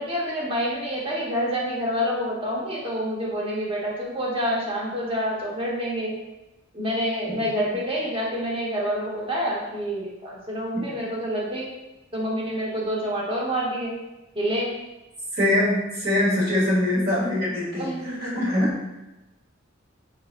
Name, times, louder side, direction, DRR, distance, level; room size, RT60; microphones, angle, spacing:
voice 1, 0.0-6.1 6.7-11.7 12.1-13.9 14.3-14.7 17.7-18.3, equal, 30° right, -4 dB, 1.0 m, -27 dB
voice 2, 15.3-18.8, left 1 dB, 50° right, -4 dB, 1.3 m, -23 dB
3.9 x 3.8 x 2.5 m, 1.0 s
head